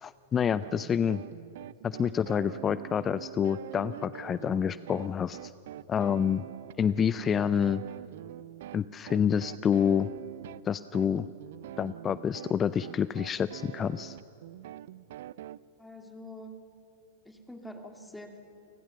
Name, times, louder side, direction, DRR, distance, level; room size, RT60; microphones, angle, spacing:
voice 1, 0.0-1.2 1.8-5.5 5.9-6.4 6.8-7.8 8.7-10.1 10.6-11.3 11.8-14.2, left 8 dB, 25° left, 16 dB, 0.4 m, -28 dB
sound 1, 0.6-15.6, right 13 dB, 60° right, 0.4 m, -44 dB
voice 2, 15.8-16.6 17.2-18.4, equal, 5° left, 4 dB, 2.4 m, -45 dB
28.5 x 16.0 x 6.9 m, 2.8 s
hypercardioid pair, 100°, 0 cm